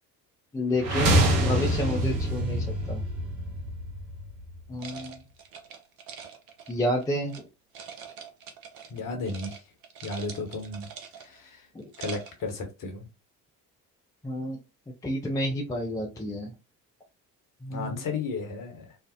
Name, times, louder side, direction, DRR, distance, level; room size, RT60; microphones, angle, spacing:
voice 1, 0.5-3.0 4.7-5.2 6.7-7.5 11.7-11.9 14.2-14.6 15.0-16.5 17.6-18.0, left 1 dB, 5° left, 0.5 m, -30 dB
sound 1, 0.8-4.7, right 1 dB, 85° right, 0.5 m, -26 dB
sound 2, 4.8-7.4 7.7-9.0 9.2-9.6 9.8-11.4 11.8-12.4, right 6 dB, 45° right, 0.7 m, -44 dB
voice 2, 8.9-9.6 10.0-10.9 11.2-11.7 12.0-13.1 17.7-19.0, left 3 dB, 40° left, 0.9 m, -34 dB
2.5 x 2.0 x 2.5 m
figure-of-eight pair, 50°, 49 cm